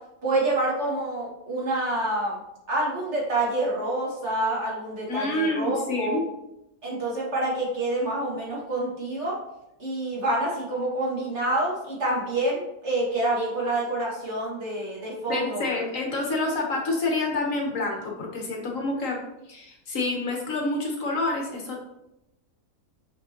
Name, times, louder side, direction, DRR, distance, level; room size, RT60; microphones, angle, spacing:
voice 1, 0.2-2.4 2.7-6.2 6.8-9.4 9.8-15.7, right 2 dB, 45° right, -5 dB, 2.2 m, -27 dB
voice 2, 5.1-6.2 15.3-19.2 19.5-21.8, left 2 dB, 60° left, 0 dB, 1.5 m, -28 dB
6.2 x 6.0 x 2.9 m, 0.87 s
omnidirectional pair, 1.6 m